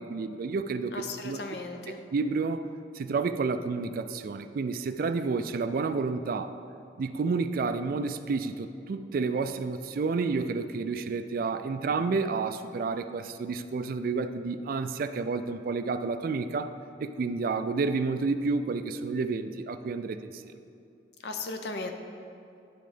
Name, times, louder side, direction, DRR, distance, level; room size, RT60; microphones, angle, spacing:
voice 1, 0.0-1.4 1.9-2.7 2.9-6.6 7.0-16.7 17.0-20.5, right 4 dB, 55° right, 10 dB, 0.3 m, -30 dB
voice 2, 0.9-2.0 21.2-21.9, left 3 dB, 65° left, 5 dB, 0.6 m, -36 dB
10.5 x 3.8 x 5.0 m, 2.6 s
head